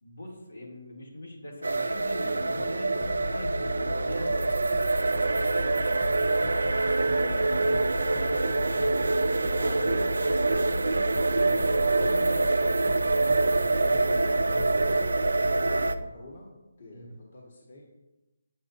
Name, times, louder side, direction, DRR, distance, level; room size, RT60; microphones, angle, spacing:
voice 1, 0.0-4.6 9.5-9.8 16.9-17.2, left 1 dB, 85° left, -2 dB, 2.6 m, -42 dB
sound 1, 1.6-16.0, right 3 dB, 80° right, 0.4 m, -25 dB
sound 2, 2.2-16.0, left 1 dB, 40° left, 0.6 m, -36 dB
voice 2, 6.1-11.0 11.5-15.3 15.9-16.5 16.8-17.8, left 1 dB, 55° left, -2 dB, 1.5 m, -43 dB
8.0 x 7.2 x 2.7 m, 1.0 s
figure-of-eight pair, 155°, 0 cm